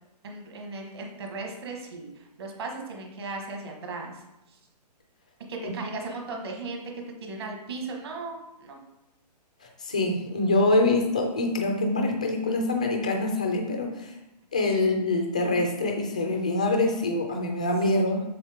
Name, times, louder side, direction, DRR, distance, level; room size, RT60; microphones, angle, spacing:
voice 1, 0.2-4.2 4.5-4.6 5.5-6.8 7.2-8.8 14.7-14.8, right 3 dB, 35° right, 1 dB, 1.6 m, -37 dB
voice 2, 9.8-14.1 14.5-18.2, left 2 dB, 10° left, 3 dB, 0.3 m, -25 dB
7.8 x 6.6 x 3.5 m, 0.92 s
hypercardioid pair, 175°, 21 cm